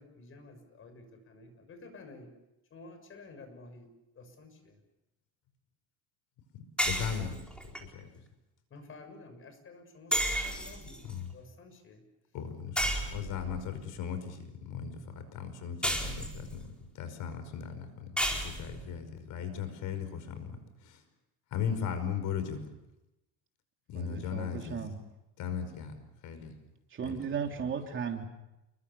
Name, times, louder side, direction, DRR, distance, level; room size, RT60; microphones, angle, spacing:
voice 1, 0.0-2.3 2.7-3.9 4.2-4.7 8.7-11.0 11.3-12.0, left 3 dB, 40° left, 6.5 m, -51 dB
sound 1, 6.8-7.8 10.1-11.1 12.8-13.6 15.8-16.7 18.2-18.9, equal, 5° left, 4.4 m, -32 dB
voice 2, 19.4-20.0 21.5-22.4 24.0-24.6 25.4-25.6, left 8 dB, 60° left, 5.3 m, -33 dB
voice 3, 23.9-25.0 26.9-28.2, right 6 dB, 35° right, 3.4 m, -35 dB
29.0 x 23.5 x 7.1 m
cardioid pair, 135°, 34 cm